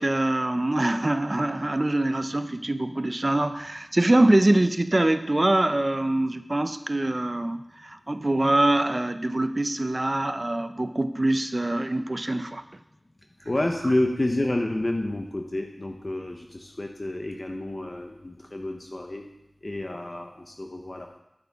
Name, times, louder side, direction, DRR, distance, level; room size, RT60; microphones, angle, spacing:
voice 1, 0.0-12.6, right 1 dB, 40° right, 10 dB, 0.5 m, -24 dB
voice 2, 13.4-19.2 19.6-21.2, left 1 dB, 40° left, 2 dB, 0.9 m, -29 dB
9.8 x 9.5 x 3.6 m, 0.88 s
wide cardioid pair, 60°, 0 cm